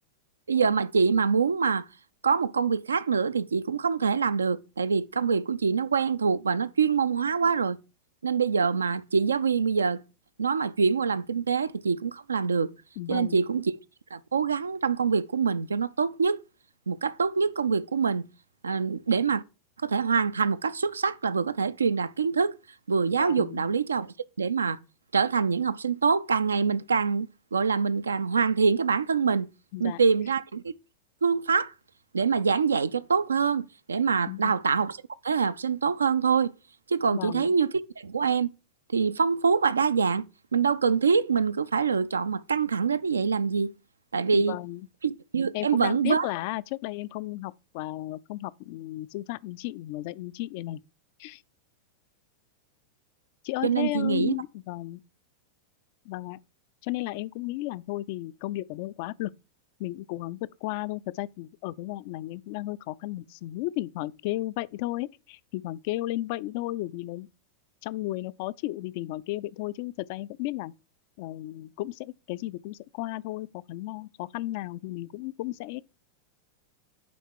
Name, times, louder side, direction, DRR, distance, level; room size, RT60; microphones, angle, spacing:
voice 1, 0.5-1.8 2.2-7.8 8.2-10.0 10.4-12.7 13.1-13.7 14.1-16.4 16.9-18.3 18.6-19.4 19.8-22.6 22.9-24.8 25.1-29.5 29.8-30.7 31.2-31.7 32.1-35.0 35.2-36.5 36.9-38.5 38.9-40.2 40.5-43.7 44.1-44.6 45.0-46.3 53.6-54.3, right 5 dB, 75° right, 0.3 m, -25 dB
voice 2, 13.0-13.4 23.2-23.6 29.7-30.0 34.3-34.6 37.1-37.5 44.3-44.9 45.5-50.8 51.2-51.4 53.4-55.0 56.1-56.4 56.8-59.3 59.8-67.3 67.8-70.7 71.2-75.8, left 17 dB, 45° left, 0.3 m, -34 dB
9.3 x 3.5 x 4.5 m
figure-of-eight pair, 90°, 0 cm